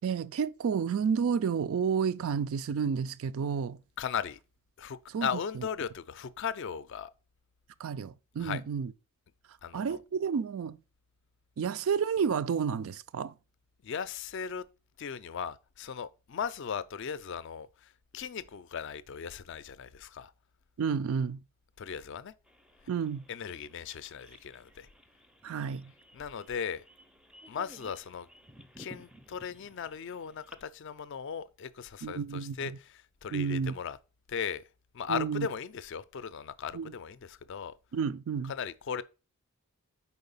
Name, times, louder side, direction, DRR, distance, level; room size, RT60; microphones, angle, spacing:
voice 1, 0.0-3.8 5.1-5.3 5.6-5.7 7.8-8.9 9.7-10.8 11.6-13.4 20.8-21.4 22.9-23.2 25.4-25.9 32.0-32.8 33.3-33.8 35.1-35.5 36.7-36.9 37.9-38.5, right 6 dB, 70° right, 0.4 m, -31 dB
voice 2, 4.0-4.4 4.8-7.1 8.4-8.6 9.6-10.0 13.8-14.6 15.0-20.3 21.8-22.3 23.3-24.9 26.1-26.8 27.5-28.3 28.8-32.7 33.2-34.0 34.3-34.6 34.9-37.7 38.5-39.0, left 7 dB, 55° left, 0.4 m, -37 dB
sound 1, 22.4-30.7, right 1 dB, 5° right, 0.4 m, -56 dB
4.8 x 4.2 x 5.4 m
head